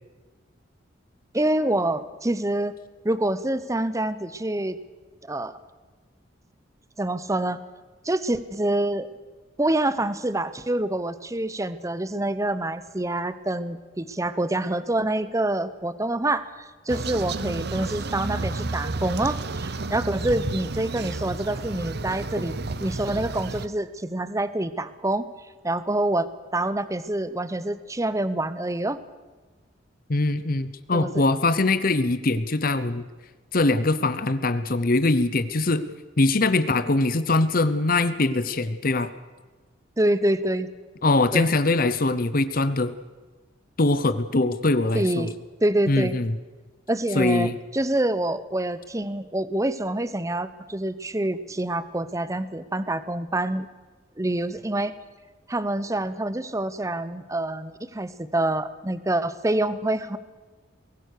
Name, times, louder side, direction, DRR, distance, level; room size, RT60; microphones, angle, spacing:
voice 1, 1.3-2.7 3.0-4.8 5.3-5.6 7.0-7.6 8.0-9.1 9.6-22.5 22.8-25.3 25.6-29.0 30.9-31.2 40.0-40.7 41.3-41.5 44.9-45.3 45.6-46.2 46.9-53.7 54.2-54.9 55.5-60.2, right 1 dB, 15° right, 14 dB, 0.9 m, -26 dB
sound 1, 16.9-23.7, right 3 dB, 55° right, 0.9 m, -31 dB
voice 2, 30.1-33.0 33.5-35.9 36.2-39.1 41.0-42.9 43.8-45.3 45.9-46.3 47.1-47.5, left 2 dB, 50° left, 13 dB, 0.9 m, -22 dB
22.5 x 19.0 x 6.6 m, 1.3 s
head